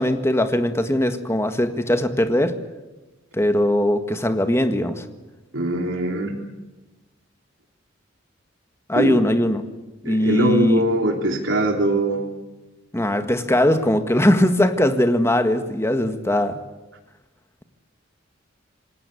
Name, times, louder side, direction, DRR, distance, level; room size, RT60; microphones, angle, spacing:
voice 1, 0.0-2.5 3.3-5.0 8.9-9.6 10.0-10.8 12.9-16.6, left 1 dB, 15° left, 8 dB, 1.7 m, -20 dB
voice 2, 5.5-6.4 8.9-9.2 10.0-12.3, right 1 dB, 80° right, 2 dB, 3.1 m, -22 dB
27.5 x 19.0 x 8.5 m, 1.1 s
head